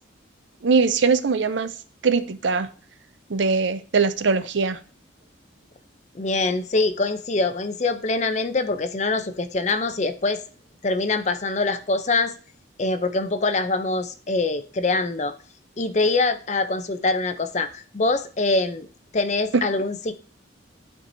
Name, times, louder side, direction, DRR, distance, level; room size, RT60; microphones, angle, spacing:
voice 1, 0.6-1.7 2.0-2.7 3.3-4.8, right 4 dB, 70° right, 0.6 m, -21 dB
voice 2, 6.1-10.4 10.8-12.3 12.8-15.4 15.8-18.9 19.1-20.1, left 3 dB, 35° left, 0.5 m, -24 dB
12.0 x 4.5 x 2.7 m
head